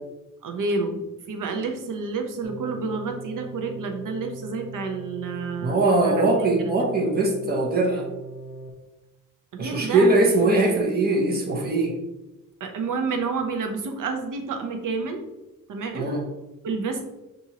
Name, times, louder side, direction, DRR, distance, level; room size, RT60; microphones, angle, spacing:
voice 1, 0.4-5.8 6.0-6.2 6.6-6.7 9.5-10.3 12.6-15.2 15.7-16.1 16.6-17.1, right 4 dB, 70° right, 4 dB, 0.7 m, -29 dB
sound 1, 2.4-8.7, right 2 dB, ahead, 0.6 m, -39 dB
voice 2, 5.6-8.0 9.6-11.9 15.9-16.2, right 2 dB, 30° right, -1 dB, 0.9 m, -21 dB
5.8 x 2.6 x 2.8 m, 0.99 s
wide cardioid pair, 115°, 33 cm